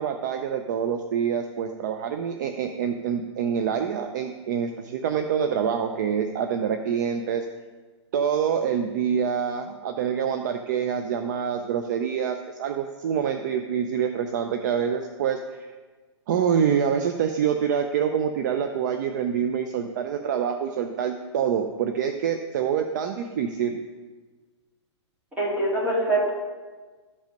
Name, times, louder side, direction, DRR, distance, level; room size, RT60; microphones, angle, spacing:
voice 1, 0.0-7.5 8.1-15.7 16.3-23.8, right 7 dB, 40° right, 7 dB, 0.5 m, -26 dB
voice 2, 25.4-26.3, right 1 dB, 10° right, -6 dB, 2.3 m, -23 dB
13.0 x 5.2 x 5.2 m, 1.4 s
hypercardioid pair, 165°, 15 cm